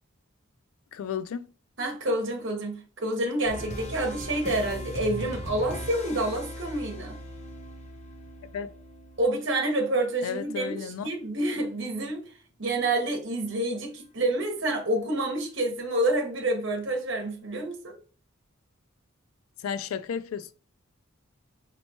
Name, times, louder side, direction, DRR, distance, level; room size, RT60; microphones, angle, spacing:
voice 1, 0.9-1.5 8.5-8.7 10.2-11.1 19.6-20.5, left 7 dB, 80° left, 0.3 m, -33 dB
voice 2, 1.8-7.2 9.2-12.2 12.6-18.0, right 1 dB, 60° right, 1.0 m, -28 dB
sound 1, 3.5-10.2, equal, 30° left, 0.7 m, -39 dB
4.3 x 2.9 x 2.8 m
head